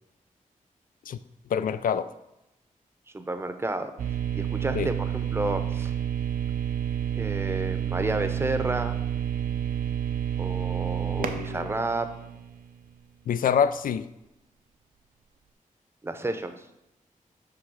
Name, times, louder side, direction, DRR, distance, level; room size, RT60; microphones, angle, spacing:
voice 1, 1.5-2.1 4.7-4.9 11.2-11.7 13.3-14.1, left 7 dB, 85° left, 13 dB, 0.4 m, -26 dB
voice 2, 3.1-3.9 4.3-5.9 7.2-8.9 10.4-12.1 16.0-16.5, right 2 dB, 15° right, 8 dB, 0.7 m, -31 dB
sound 1, 4.0-12.9, right 9 dB, 90° right, 0.6 m, -29 dB
8.0 x 3.4 x 6.2 m, 0.90 s
wide cardioid pair, 125°, 14 cm